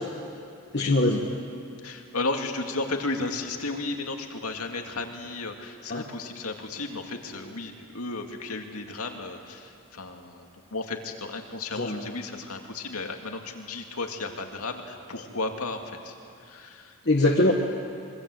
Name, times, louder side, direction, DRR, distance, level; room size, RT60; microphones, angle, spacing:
voice 1, 0.7-1.2 5.9-6.0 11.8-12.0 17.1-17.5, left 2 dB, 45° left, -1 dB, 1.5 m, -22 dB
voice 2, 1.8-17.0, left 3 dB, 85° left, 3 dB, 2.3 m, -34 dB
26.0 x 23.0 x 7.9 m, 2.5 s
head